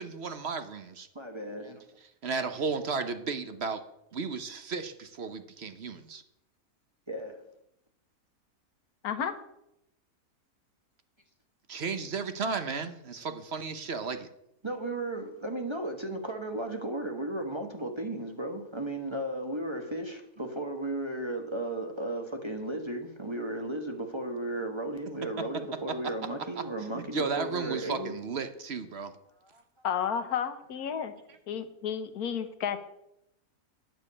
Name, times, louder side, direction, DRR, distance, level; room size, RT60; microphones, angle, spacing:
voice 1, 0.0-1.1 2.2-3.8 4.1-6.2 11.7-14.3 26.8-29.1, right 4 dB, 50° right, 1.0 m, -34 dB
voice 2, 1.1-1.8 7.1-7.5 14.6-28.1 29.4-29.6, right 1 dB, 20° right, 1.0 m, -35 dB
voice 3, 29.8-31.1 31.5-32.9, left 8 dB, 75° left, 1.4 m, -32 dB
9.1 x 6.8 x 8.6 m
omnidirectional pair, 1.6 m